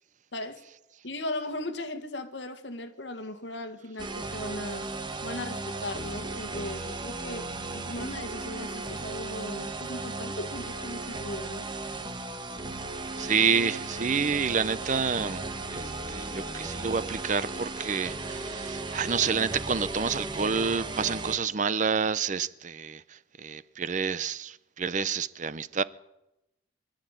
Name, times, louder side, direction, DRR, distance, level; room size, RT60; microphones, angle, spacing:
voice 1, 0.3-0.6 1.0-4.9 5.2-11.7, left 1 dB, 70° left, 1.8 m, -37 dB
sound 1, 4.0-21.4, right 2 dB, 25° right, 1.2 m, -36 dB
sound 2, 11.8-21.3, right 1 dB, 10° left, 6.2 m, -54 dB
voice 2, 13.2-15.4 15.7-25.8, right 6 dB, 40° right, 0.6 m, -29 dB
24.5 x 12.0 x 9.0 m
head